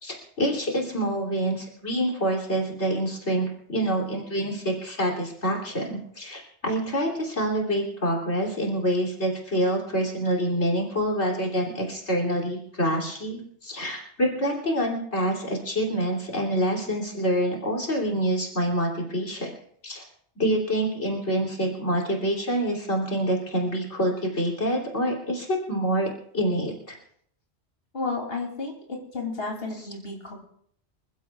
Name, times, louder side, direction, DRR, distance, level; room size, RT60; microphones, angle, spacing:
voice 1, 0.0-19.5 19.8-20.0 20.4-26.1 26.3-27.0, right 1 dB, 80° left, -1 dB, 3.5 m, -26 dB
voice 2, 27.9-30.3, left 3 dB, 60° left, -1 dB, 3.3 m, -32 dB
26.0 x 15.5 x 2.4 m, 0.66 s
omnidirectional pair, 1.2 m